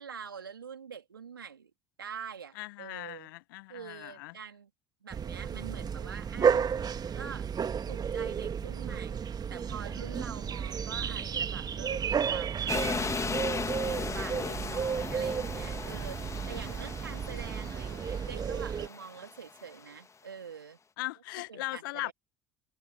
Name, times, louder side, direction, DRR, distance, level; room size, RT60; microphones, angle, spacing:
voice 1, 0.0-1.7 2.0-3.3 3.7-4.7 5.0-6.7 7.1-7.5 7.9-12.7 13.9-16.2 16.5-20.8 21.5-22.1, right 7 dB, 85° right, 3.1 m, -45 dB
voice 2, 2.5-4.3 14.3-14.8 15.9-16.7 21.0-22.1, left 21 dB, 70° left, 0.9 m, -40 dB
sound 1, 5.1-18.9, right 7 dB, 35° right, 1.8 m, -32 dB
sound 2, 12.7-19.8, left 5 dB, 25° left, 2.0 m, -37 dB
figure-of-eight pair, 60°, 11 cm